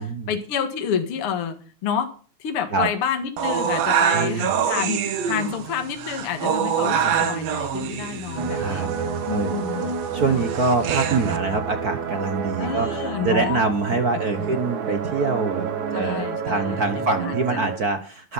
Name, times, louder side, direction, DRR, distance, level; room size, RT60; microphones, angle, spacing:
voice 1, 0.0-2.1 2.4-8.9 9.3-9.9 10.3-10.5 12.6-13.7 14.4-14.6 15.9-17.4, left 7 dB, 50° left, 7 dB, 2.4 m, -29 dB
sound 1, 3.4-11.4, right 8 dB, 65° right, 2.3 m, -25 dB
voice 2, 4.1-4.5 8.5-8.9 9.3-18.3, right 4 dB, 50° right, 8 dB, 1.1 m, -25 dB
sound 2, 8.4-17.8, right 6 dB, 85° right, 3.2 m, -29 dB
12.5 x 11.5 x 5.5 m, 0.39 s
omnidirectional pair, 3.3 m